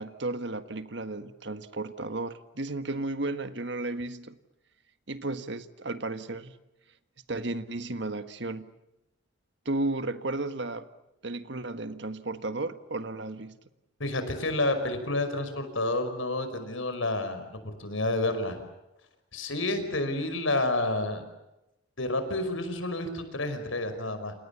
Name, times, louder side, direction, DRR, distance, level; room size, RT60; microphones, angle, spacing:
voice 1, 0.0-4.4 5.1-6.6 7.3-8.7 9.6-10.9 11.2-13.6, right 2 dB, 60° right, 10 dB, 1.5 m, -34 dB
voice 2, 14.0-18.6 19.3-21.3 22.0-24.4, left 2 dB, 80° left, 9 dB, 5.4 m, -29 dB
29.5 x 28.0 x 7.2 m, 0.90 s
head